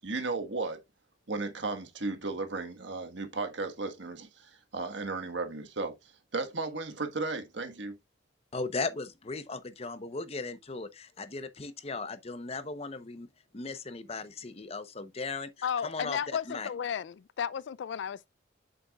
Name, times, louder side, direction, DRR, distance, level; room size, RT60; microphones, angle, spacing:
voice 1, 0.0-0.8 1.3-5.9 6.3-8.0, right 3 dB, 75° right, 1.5 m, -35 dB
voice 2, 8.5-13.3 13.5-16.2 16.5-16.7, left 3 dB, 35° left, 0.8 m, -37 dB
voice 3, 15.6-18.3, left 8 dB, 70° left, 0.3 m, -33 dB
8.1 x 6.9 x 2.3 m
head